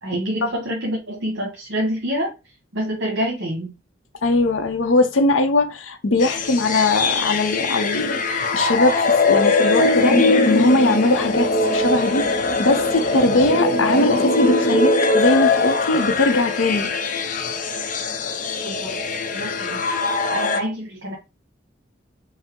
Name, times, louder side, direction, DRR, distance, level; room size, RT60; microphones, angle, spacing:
voice 1, 0.0-2.3 2.7-3.7 18.6-19.0 19.3-19.8 20.3-21.2, equal, 65° right, 1.3 m, -26 dB
voice 2, 4.2-10.2 10.5-16.9, left 2 dB, 85° left, 0.7 m, -20 dB
sound 1, 6.2-20.6, left 3 dB, 40° left, 0.6 m, -21 dB
5.4 x 2.0 x 3.7 m
head